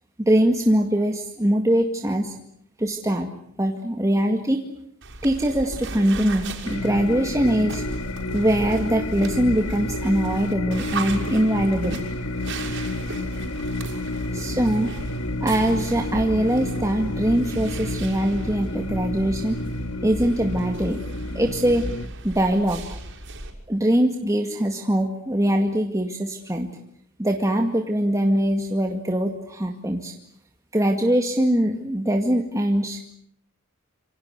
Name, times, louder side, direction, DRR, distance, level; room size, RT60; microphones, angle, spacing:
voice 1, 0.2-2.3 2.8-3.3 3.6-4.6 5.2-7.8 8.3-12.3 14.3-14.9 15.4-19.6 20.0-21.0 21.3-21.8 22.2-22.8 23.7-26.7 27.2-30.1 30.7-33.1, right 1 dB, 15° right, 3 dB, 2.1 m, -22 dB
sound 1, 5.0-23.5, right 2 dB, 65° right, 6.4 m, -36 dB
sound 2, 6.7-22.1, left 1 dB, 70° left, 1.8 m, -30 dB
27.5 x 25.5 x 8.2 m, 0.68 s
head